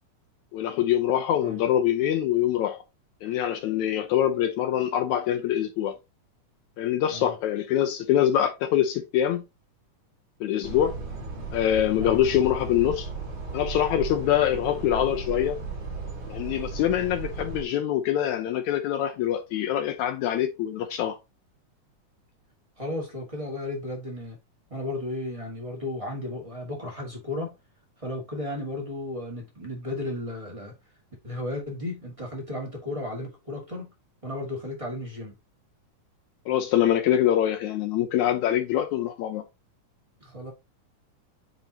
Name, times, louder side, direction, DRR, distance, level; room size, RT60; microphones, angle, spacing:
voice 1, 0.5-2.8 3.2-6.0 6.8-9.4 10.4-11.0 11.5-13.1 13.5-15.6 16.3-21.2 36.5-39.4, left 11 dB, 75° left, 1.9 m, -24 dB
sound 1, 10.6-17.6, right 4 dB, 40° right, 2.3 m, -35 dB
voice 2, 22.8-24.4 24.7-27.5 28.0-30.7 31.2-33.9 34.2-35.3 40.2-40.5, left 1 dB, 15° right, 1.1 m, -34 dB
9.0 x 3.8 x 2.9 m
omnidirectional pair, 3.7 m